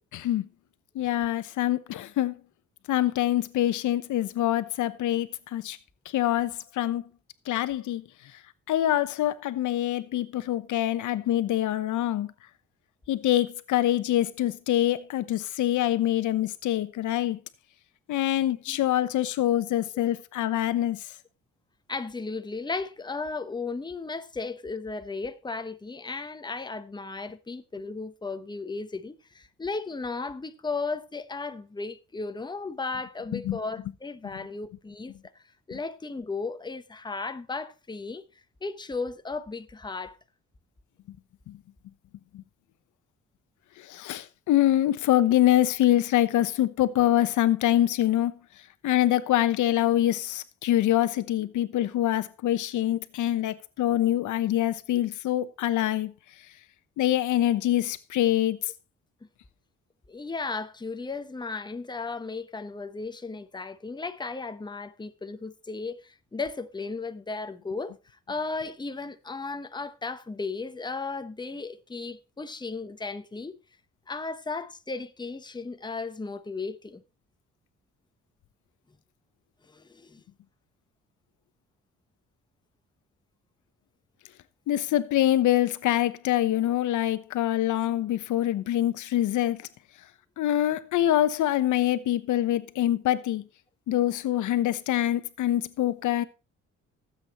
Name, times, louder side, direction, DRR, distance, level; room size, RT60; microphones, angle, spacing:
voice 1, 0.1-0.5 0.9-2.4 2.9-5.8 6.1-7.0 7.5-8.0 8.7-12.3 13.1-17.4 18.1-21.1 33.3-33.6 35.7-35.8 41.5-41.6 42.3-42.4 43.8-48.3 48.8-56.1 57.0-58.6 84.7-89.6 90.4-93.4 93.9-96.2, left 13 dB, 80° left, 1.0 m, -25 dB
voice 2, 21.9-35.4 35.7-38.2 38.6-40.2 60.1-68.0 68.3-73.6 74.1-77.0 79.7-80.2, left 4 dB, 15° left, 1.0 m, -35 dB
18.5 x 8.1 x 3.1 m
cardioid pair, 90°, 30 cm